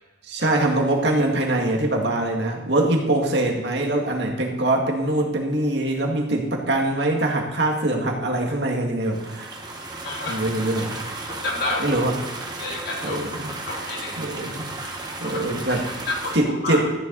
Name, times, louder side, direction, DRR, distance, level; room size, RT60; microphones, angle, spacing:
voice 1, 0.3-9.6 10.3-11.0 11.8-12.1 13.0-13.5 14.2-14.7 15.2-15.9 16.3-16.9, right 1 dB, 60° right, 1 dB, 2.0 m, -23 dB
sound 1, 9.0-16.4, right 2 dB, 20° right, 1.4 m, -34 dB
voice 2, 10.0-10.4 11.3-12.0 12.6-13.2 13.7-14.2 15.2-16.8, left 2 dB, 55° left, -1 dB, 2.7 m, -30 dB
14.0 x 10.5 x 4.1 m, 1.2 s
head